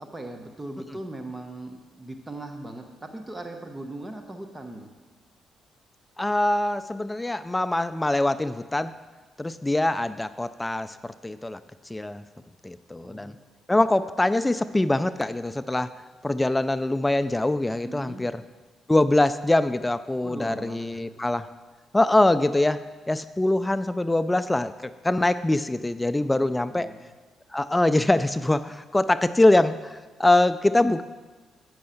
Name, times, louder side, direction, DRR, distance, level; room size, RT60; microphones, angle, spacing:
voice 1, 0.0-4.9 13.0-13.4 17.8-18.2 20.2-21.3 26.2-27.1, right 2 dB, 15° right, 5 dB, 0.9 m, -39 dB
voice 2, 6.2-8.9 9.4-11.6 11.9-12.2 12.6-13.3 13.7-15.9 16.2-18.4 18.9-21.5 21.9-24.7 25.0-26.9 27.5-31.0, left 2 dB, 15° left, 13 dB, 0.3 m, -23 dB
8.7 x 6.3 x 7.0 m, 1.3 s
cardioid pair, 90°, 0 cm